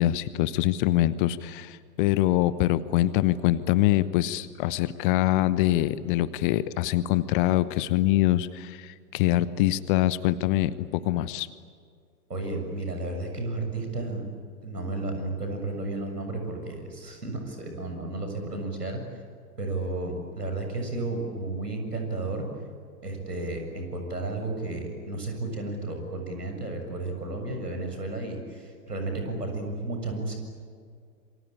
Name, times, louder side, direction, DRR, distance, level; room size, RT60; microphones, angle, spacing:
voice 1, 0.0-11.5, left 15 dB, 35° left, 16 dB, 1.0 m, -24 dB
voice 2, 12.3-14.2 14.6-19.0 19.6-22.5 23.0-30.4, right 2 dB, 80° right, 4 dB, 7.2 m, -33 dB
27.5 x 25.0 x 8.8 m, 2.1 s
figure-of-eight pair, 100°, 47 cm